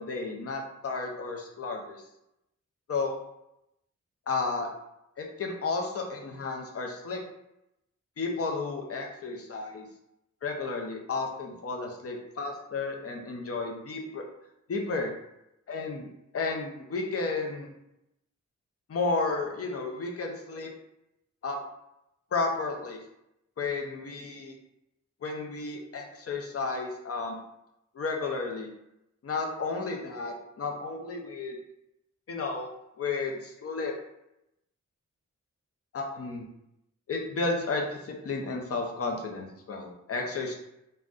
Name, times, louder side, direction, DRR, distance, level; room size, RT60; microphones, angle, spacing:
voice 1, 0.0-2.0 2.9-3.1 4.3-4.7 5.2-7.2 8.2-9.8 10.4-14.2 14.7-15.1 15.7-16.1 16.3-17.7 18.9-20.7 21.4-21.6 22.3-23.0 23.6-24.5 25.2-27.4 27.9-28.7 29.2-31.5 32.3-32.7 33.0-33.9 35.9-36.5 37.1-40.5, left 3 dB, 50° left, 1 dB, 0.5 m, -32 dB
2.5 x 2.1 x 3.5 m, 0.86 s
wide cardioid pair, 135°, 30 cm